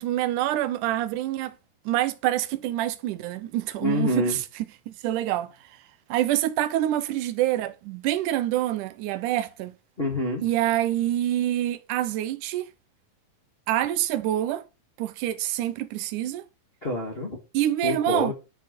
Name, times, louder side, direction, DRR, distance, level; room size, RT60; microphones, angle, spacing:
voice 1, 0.0-1.6 1.9-4.4 4.9-5.5 6.1-9.7 10.4-12.7 13.7-14.7 15.0-16.5 17.5-18.3, right 13 dB, 75° right, 2.1 m, -26 dB
voice 2, 3.8-4.4 10.0-10.5 16.8-17.4 17.8-18.3, left 1 dB, 30° left, 1.0 m, -27 dB
11.5 x 4.0 x 5.2 m
omnidirectional pair, 4.2 m